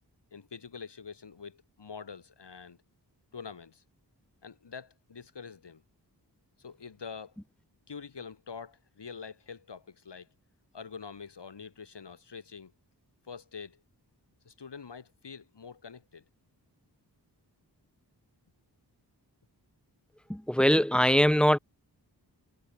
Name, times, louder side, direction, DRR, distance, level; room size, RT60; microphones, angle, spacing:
voice 1, 0.3-2.8 3.3-3.8 4.4-5.8 6.6-7.4 7.9-10.3 10.7-12.7 13.3-13.8 14.4-16.2, left 5 dB, 85° left, 4.7 m, -45 dB
voice 2, 20.3-21.6, equal, ahead, 0.9 m, -22 dB
wide cardioid pair, 70°, 41 cm